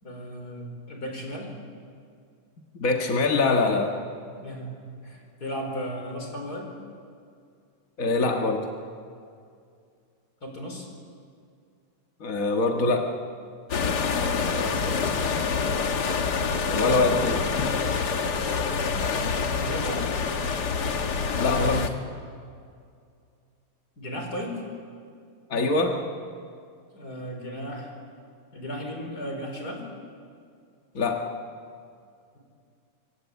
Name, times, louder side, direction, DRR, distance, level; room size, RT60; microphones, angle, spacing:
voice 1, 0.0-1.6 4.4-6.7 10.4-10.9 14.3-15.1 19.1-20.0 24.0-24.6 26.9-27.9 28.5-29.8, equal, 25° left, 2 dB, 5.0 m, -35 dB
voice 2, 2.8-4.0 8.0-8.6 12.2-13.1 16.7-17.4 21.4-21.9 25.5-26.0 30.9-31.2, left 3 dB, 45° left, 2 dB, 1.1 m, -23 dB
sound 1, 13.7-21.9, left 5 dB, 70° left, 0.9 m, -26 dB
25.0 x 24.5 x 8.4 m, 2.3 s
omnidirectional pair, 3.8 m